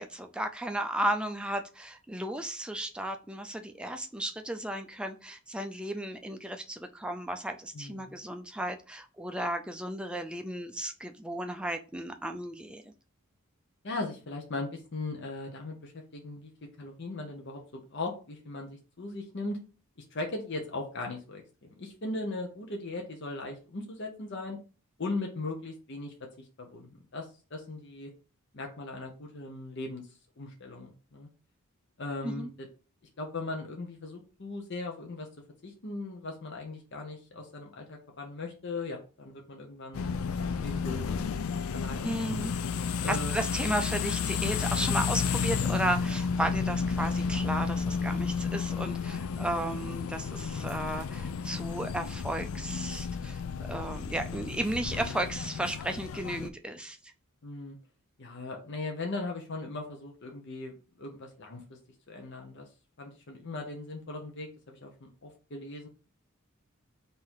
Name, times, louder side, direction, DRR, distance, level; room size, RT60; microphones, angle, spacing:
voice 1, 0.0-12.8 32.2-32.5 42.0-42.5 43.1-57.0, right 1 dB, 5° right, 6 dB, 0.4 m, -34 dB
voice 2, 7.7-8.1 13.8-16.5 16.8-19.6 20.0-21.4 21.8-24.6 25.0-28.1 28.5-30.0 30.4-31.3 32.0-32.7 33.2-35.3 35.6-40.0 40.6-41.1 41.7-42.1 43.0-43.3 57.4-57.8 58.2-61.8 62.1-62.7 63.0-65.9, left 2 dB, 55° left, 1 dB, 0.8 m, -38 dB
sound 1, 39.9-56.5, left 5 dB, 85° left, 0.4 m, -32 dB
3.8 x 2.7 x 4.6 m, 0.35 s
head